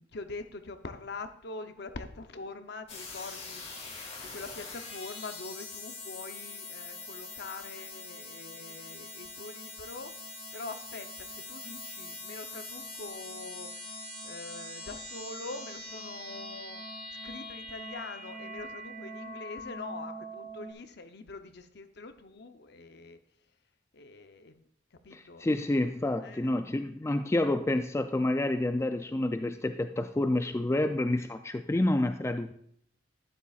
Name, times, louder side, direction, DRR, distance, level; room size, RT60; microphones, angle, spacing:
voice 1, 0.0-3.6 4.3-10.1 10.5-13.7 14.2-16.8 17.2-23.2 23.9-24.6 25.0-25.5 26.2-26.5, left 3 dB, 60° left, 9 dB, 0.7 m, -44 dB
sound 1, 2.9-20.7, left 2 dB, 35° left, 1.8 m, -43 dB
voice 2, 25.1-32.5, left 1 dB, 15° left, 8 dB, 0.3 m, -29 dB
12.0 x 10.0 x 2.4 m, 0.68 s
head